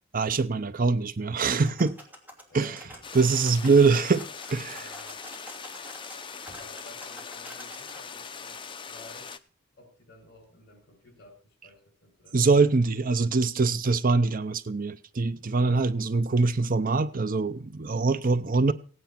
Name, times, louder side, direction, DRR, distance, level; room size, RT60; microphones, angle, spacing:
voice 1, 0.1-2.0 2.5-2.7 3.1-4.2 4.5-4.8 12.3-18.7, right 4 dB, 45° right, 0.6 m, -23 dB
sound 1, 1.6-8.0, equal, 10° right, 2.8 m, -48 dB
voice 2, 2.5-3.1 3.6-4.2 4.7-5.2 6.5-9.4 9.7-12.5 15.6-15.9 18.7-18.8, left 2 dB, 50° left, 6.4 m, -52 dB
sound 2, 3.0-9.4, left 6 dB, 25° left, 0.7 m, -41 dB
17.0 x 9.4 x 5.8 m
head